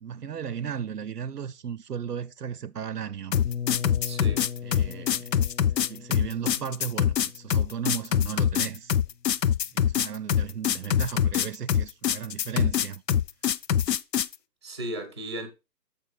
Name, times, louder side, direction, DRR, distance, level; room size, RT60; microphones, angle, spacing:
voice 1, 0.0-3.4 4.6-5.4 5.7-8.9 9.7-13.0, right 8 dB, 75° right, 0.6 m, -35 dB
sound 1, 3.3-14.3, left 9 dB, 85° left, 0.6 m, -24 dB
sound 2, 3.4-9.2, left 7 dB, 55° left, 1.2 m, -39 dB
voice 2, 4.0-4.5 14.6-15.5, right 1 dB, 15° right, 0.7 m, -35 dB
7.1 x 4.3 x 4.7 m
figure-of-eight pair, 150°, 48 cm